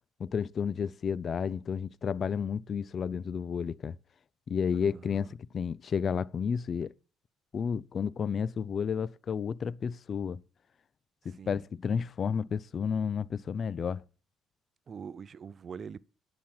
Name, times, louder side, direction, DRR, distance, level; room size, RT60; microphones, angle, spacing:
voice 1, 0.2-4.0 4.5-6.9 7.5-10.4 11.2-14.0, left 6 dB, 45° left, 0.5 m, -31 dB
voice 2, 4.7-5.3 11.4-11.6 14.9-16.1, right 6 dB, 45° right, 0.5 m, -44 dB
10.0 x 6.2 x 8.7 m
hypercardioid pair, 55°, 0 cm